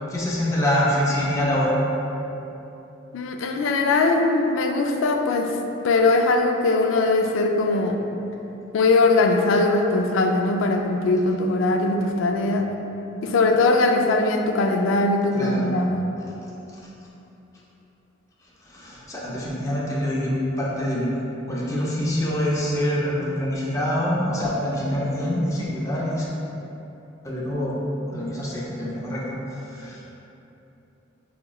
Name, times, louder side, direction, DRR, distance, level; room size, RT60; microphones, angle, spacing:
voice 1, 0.1-1.8 15.3-15.8 18.6-21.1 21.5-26.3 27.2-27.8 28.1-29.2 29.5-30.2, equal, 15° left, -6 dB, 0.5 m, -25 dB
voice 2, 3.1-5.6 5.8-8.0 8.7-12.7 13.2-16.0, left 2 dB, 70° left, 3 dB, 0.3 m, -20 dB
4.8 x 2.9 x 2.3 m, 3.0 s
head